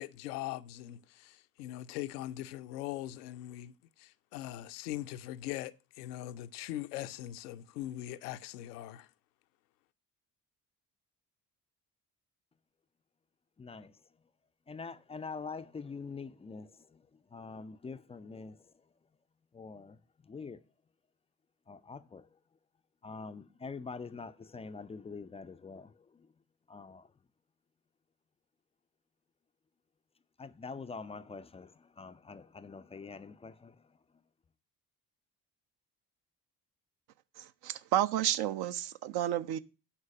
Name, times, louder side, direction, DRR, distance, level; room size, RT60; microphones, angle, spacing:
voice 1, 0.0-9.1, left 14 dB, 70° left, 0.6 m, -41 dB
voice 2, 13.6-14.0 14.7-18.7 19.5-20.6 21.7-22.3 23.0-26.3 26.7-27.1 30.4-34.0, left 4 dB, 15° left, 0.4 m, -45 dB
voice 3, 37.6-39.6, right 12 dB, 55° right, 0.6 m, -31 dB
10.0 x 3.9 x 6.0 m
figure-of-eight pair, 45°, 48 cm